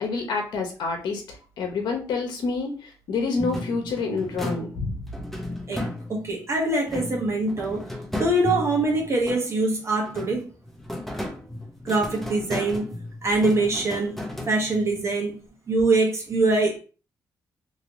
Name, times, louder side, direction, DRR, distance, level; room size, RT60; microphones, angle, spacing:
voice 1, 0.0-5.0, left 4 dB, 85° left, 0.9 m, -28 dB
sound 1, 3.4-6.4 6.9-9.7 10.1-15.0, left 1 dB, 5° left, 0.6 m, -34 dB
voice 2, 5.7-7.8 8.1-10.5 11.8-12.8 13.2-14.2 14.5-15.4 15.7-16.8, right 2 dB, 40° right, 1.1 m, -23 dB
3.0 x 2.8 x 3.0 m
cardioid pair, 95°, 7 cm